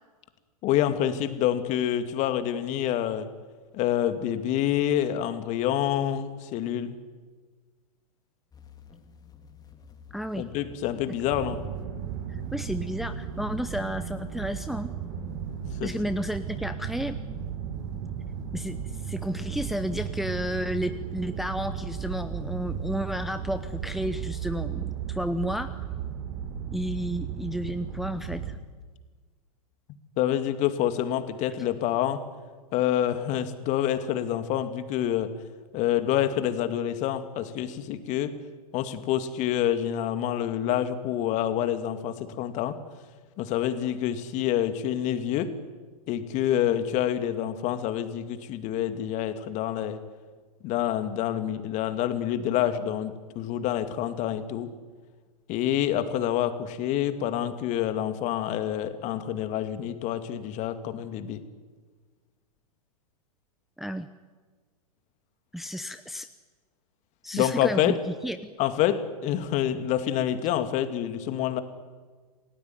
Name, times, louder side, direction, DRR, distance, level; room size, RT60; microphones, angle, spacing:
voice 1, 0.6-3.3 3.7-7.0 10.4-11.7 15.8-15.9 30.2-32.2 32.7-35.3 35.7-38.4 38.7-42.8 43.4-45.5 46.1-50.0 50.6-54.7 55.5-61.4 67.3-68.0 68.6-71.6, left 11 dB, 40° left, 10 dB, 2.4 m, -27 dB
sound 1, 8.5-24.4, left 7 dB, 20° left, 2.7 m, -50 dB
voice 2, 10.1-10.5 11.3-11.4 12.3-14.9 15.8-17.2 18.5-25.8 26.7-28.6 63.8-64.1 65.5-66.3 67.2-67.9 68.2-68.5, equal, ahead, 9 dB, 0.9 m, -32 dB
sound 2, 11.3-28.6, right 8 dB, 45° right, 3.5 m, -35 dB
28.5 x 18.5 x 9.5 m, 1.4 s
figure-of-eight pair, 105°, 20 cm